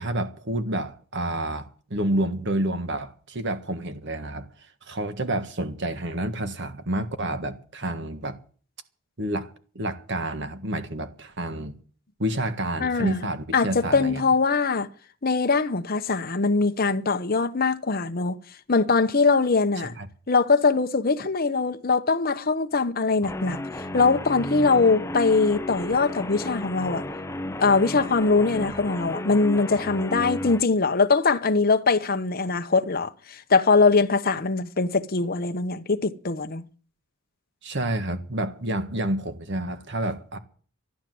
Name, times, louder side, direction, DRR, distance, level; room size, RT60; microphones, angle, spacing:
voice 1, 0.0-4.5 4.9-8.4 9.2-9.5 9.7-11.7 12.2-14.2 19.8-20.1 37.6-40.4, right 1 dB, 55° right, 1.6 m, -29 dB
voice 2, 12.8-13.3 13.5-14.9 15.2-18.4 18.7-19.9 20.3-23.6 23.9-27.0 27.6-36.6, left 4 dB, 45° left, 1.0 m, -22 dB
Guitar, 23.2-30.6, left 1 dB, 15° left, 0.7 m, -33 dB
13.0 x 12.0 x 7.8 m
head